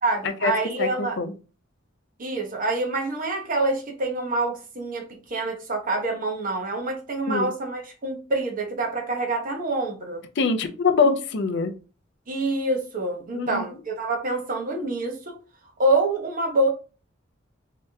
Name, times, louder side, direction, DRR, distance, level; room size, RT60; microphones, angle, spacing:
voice 1, 0.0-1.2 2.2-10.2 12.3-15.3 15.8-16.7, right 2 dB, 45° right, 2 dB, 0.9 m, -26 dB
voice 2, 0.8-1.3 7.3-7.5 10.4-11.7 13.3-13.6, left 4 dB, 65° left, 8 dB, 0.5 m, -23 dB
3.3 x 2.8 x 3.4 m, 0.35 s
head